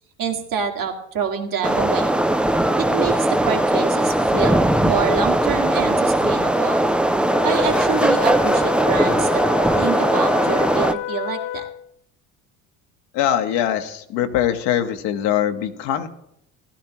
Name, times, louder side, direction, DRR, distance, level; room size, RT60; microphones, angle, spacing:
voice 1, 0.2-2.2 2.8-6.9 7.4-9.4 9.8-11.6, right 7 dB, 50° right, 2 dB, 2.0 m, -26 dB
sound 1, 1.6-10.9, right 1 dB, 5° right, 0.4 m, -19 dB
Wind instrument woodwind instrument, 7.3-11.9, left 16 dB, 45° left, 0.6 m, -30 dB
voice 2, 13.1-16.1, left 10 dB, 65° left, 7 dB, 1.2 m, -22 dB
16.0 x 12.0 x 3.0 m, 0.77 s
hypercardioid pair, 70°, 43 cm